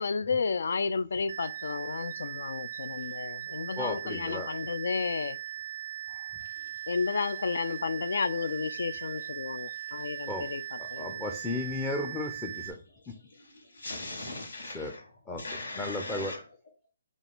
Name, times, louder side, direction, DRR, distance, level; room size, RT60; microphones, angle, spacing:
voice 1, 0.0-5.4 6.9-11.2, left 5 dB, 70° left, 0.3 m, -32 dB
sound 1, 1.3-12.7, right 11 dB, 60° right, 0.4 m, -39 dB
voice 2, 3.8-4.5 6.1-6.3 10.3-10.5 10.8-12.8 13.1-13.2 14.7-14.9 15.3-15.4 15.8-16.3, left 2 dB, 10° left, 0.5 m, -34 dB
voice 3, 6.4-6.9 9.4-10.3 10.9-11.0 13.0-15.1 15.4-16.4, left 2 dB, 90° left, 1.3 m, -42 dB
3.8 x 2.4 x 3.5 m
hypercardioid pair, 155°, 0 cm